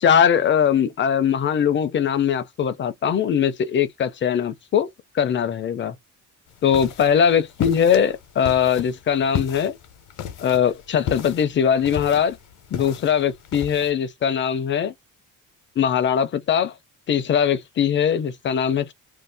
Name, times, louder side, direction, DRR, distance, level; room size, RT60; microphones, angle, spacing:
voice 1, 0.0-4.9 5.1-5.9 6.6-9.8 10.4-12.4 12.7-14.9 15.8-16.7 17.1-18.9, left 8 dB, 35° left, 0.5 m, -21 dB
sound 1, 6.5-13.9, left 10 dB, 75° left, 0.8 m, -34 dB
2.7 x 2.3 x 3.3 m
cardioid pair, 140°, 32 cm